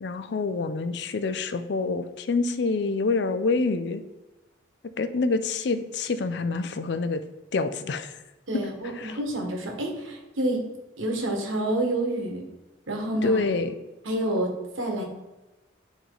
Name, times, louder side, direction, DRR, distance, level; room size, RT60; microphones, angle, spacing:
voice 1, 0.0-4.0 5.0-7.2 7.5-8.2 9.0-9.2 13.2-13.7, left 3 dB, 55° left, 11 dB, 0.4 m, -27 dB
voice 2, 8.5-10.6 11.0-12.4 12.9-13.4 14.0-15.0, right 1 dB, 80° right, 1 dB, 1.4 m, -28 dB
7.9 x 3.2 x 3.8 m, 1.1 s
head